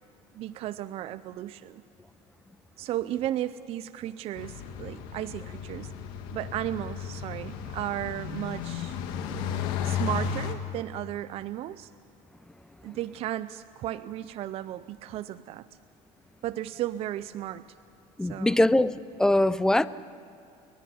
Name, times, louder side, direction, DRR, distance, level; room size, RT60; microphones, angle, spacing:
voice 1, 0.3-1.8 2.8-5.9 6.3-9.0 9.8-11.9 12.8-15.7 16.4-17.7 18.2-18.6, right 13 dB, 45° right, 0.5 m, -34 dB
sound 1, 4.3-10.5, left 8 dB, 85° left, 1.8 m, -34 dB
voice 2, 9.2-9.6 18.2-19.9, left 1 dB, 5° left, 0.5 m, -23 dB
30.0 x 11.0 x 10.0 m
cardioid pair, 140°, 14 cm